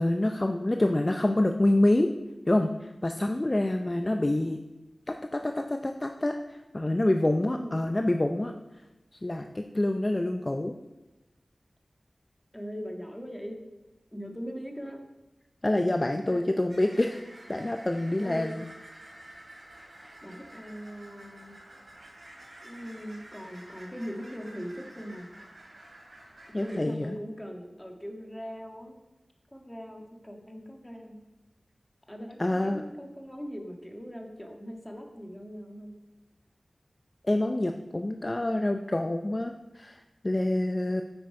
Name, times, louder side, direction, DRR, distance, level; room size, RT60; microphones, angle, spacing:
voice 1, 0.0-2.1 2.5-4.6 5.1-8.5 9.2-10.8 15.6-17.2 17.5-18.6 20.0-20.1 26.5-27.1 32.4-32.8 37.3-41.0, left 1 dB, 30° left, 5 dB, 0.5 m, -27 dB
voice 2, 12.5-13.6 14.1-15.0 16.3-16.5 18.2-18.6 20.2-21.6 22.6-25.3 26.6-29.0 29.5-31.2 32.1-36.0, equal, 10° left, 2 dB, 1.6 m, -40 dB
sound 1, 16.7-26.8, right 1 dB, 55° right, 3.0 m, -50 dB
9.5 x 8.0 x 4.8 m, 1.0 s
wide cardioid pair, 70°, 0 cm